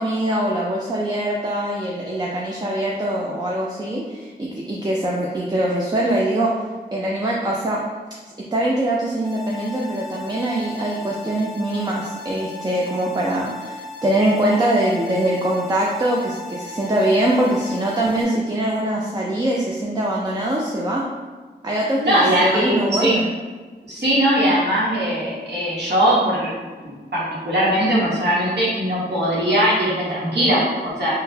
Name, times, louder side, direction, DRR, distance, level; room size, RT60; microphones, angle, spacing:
voice 1, 0.0-6.5 6.9-7.8 8.5-21.1 21.6-23.3, right 1 dB, 25° right, -3 dB, 0.4 m, -23 dB
sound 1, 9.2-18.2, left 2 dB, 25° left, 0.6 m, -36 dB
voice 2, 22.0-23.2 23.8-26.5 26.8-31.1, right 1 dB, 70° right, -7 dB, 1.1 m, -20 dB
3.8 x 2.1 x 2.6 m, 1.4 s
wide cardioid pair, 65°, 18 cm